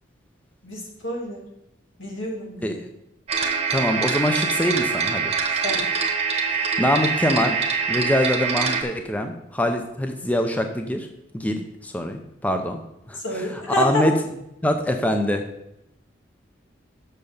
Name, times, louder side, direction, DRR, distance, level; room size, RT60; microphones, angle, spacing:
voice 1, 0.6-1.4 2.0-2.8 5.6-5.8 13.2-14.0, left 1 dB, 90° left, -1 dB, 2.4 m, -28 dB
sound 1, 3.3-8.8, right 5 dB, 30° right, 1.0 m, -24 dB
voice 2, 3.7-5.3 6.6-7.6 7.9-11.1 11.3-12.8 13.1-14.1 14.6-15.4, left 1 dB, 10° left, 5 dB, 0.5 m, -24 dB
6.8 x 6.5 x 5.4 m, 0.85 s
head